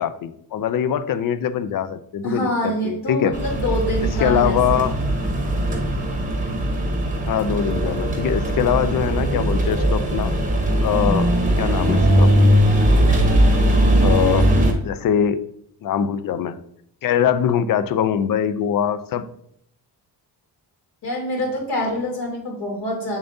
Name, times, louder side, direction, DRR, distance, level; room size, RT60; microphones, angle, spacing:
voice 1, 0.0-3.4 4.2-5.0 7.3-10.3 10.8-11.3 11.6-12.4 14.0-14.6 14.8-15.4 15.8-16.6 17.0-19.3, left 8 dB, 55° left, 13 dB, 0.5 m, -22 dB
voice 2, 2.2-4.8 21.0-23.2, equal, 80° left, -2 dB, 3.0 m, -26 dB
sound 1, 3.3-14.7, right 1 dB, 20° right, 0.8 m, -19 dB
7.0 x 6.9 x 2.6 m, 0.70 s
wide cardioid pair, 165°, 42 cm